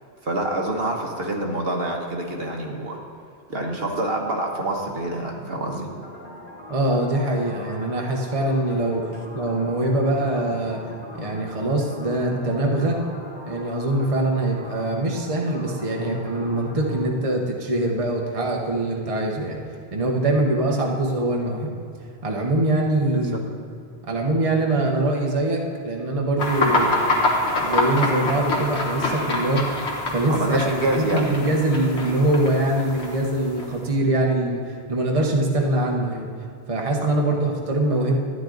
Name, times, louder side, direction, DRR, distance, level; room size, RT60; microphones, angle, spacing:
voice 1, 0.2-3.0 3.5-5.9 23.1-23.4 30.3-31.3 37.0-37.3, right 1 dB, 60° right, 1 dB, 1.4 m, -26 dB
sound 1, 5.9-17.0, left 1 dB, 40° left, 2.5 m, -42 dB
voice 2, 6.7-9.0 9.3-10.8 11.1-13.0 13.5-19.6 19.9-21.7 22.2-23.4 24.1-26.9 27.6-29.7 30.1-30.7 31.0-36.3 36.7-38.2, right 1 dB, 35° right, 0 dB, 1.1 m, -23 dB
sound 2, 26.4-33.9, left 2 dB, 75° left, 1.8 m, -26 dB
12.5 x 10.0 x 3.9 m, 2.5 s
omnidirectional pair, 1.1 m